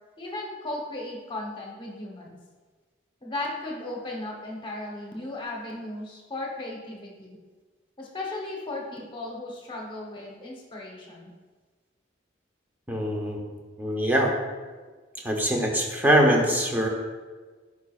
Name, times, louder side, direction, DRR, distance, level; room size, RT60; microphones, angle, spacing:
voice 1, 0.2-2.4 3.2-7.4 8.0-11.3, left 2 dB, 25° left, -1 dB, 1.0 m, -36 dB
voice 2, 12.9-13.4 13.8-14.3 15.2-16.9, equal, 10° right, 0 dB, 0.7 m, -23 dB
9.2 x 4.8 x 2.4 m, 1.4 s
head